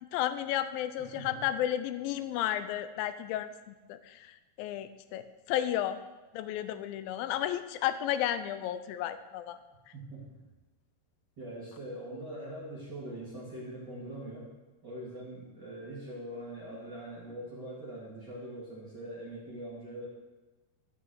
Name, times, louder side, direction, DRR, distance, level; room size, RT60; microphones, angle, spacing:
voice 1, 0.1-6.0 6.3-9.6, left 12 dB, 85° left, 11 dB, 2.0 m, -33 dB
voice 2, 1.0-1.4 9.9-10.2 11.4-14.5 14.8-20.1, right 1 dB, 30° right, -8 dB, 2.3 m, -42 dB
13.0 x 5.8 x 6.3 m, 1.1 s
omnidirectional pair, 4.7 m